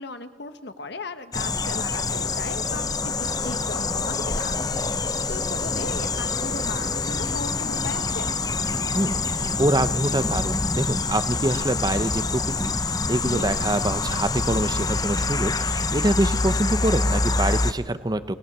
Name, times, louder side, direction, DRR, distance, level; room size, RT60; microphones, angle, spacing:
voice 1, 0.0-8.4 13.2-13.5, left 3 dB, 65° left, 10 dB, 1.4 m, -37 dB
sound 1, 1.3-17.7, left 3 dB, 20° left, 0.9 m, -26 dB
voice 2, 8.9-18.3, right 1 dB, 20° right, 12 dB, 0.8 m, -25 dB
29.5 x 19.5 x 7.4 m, 1.5 s
head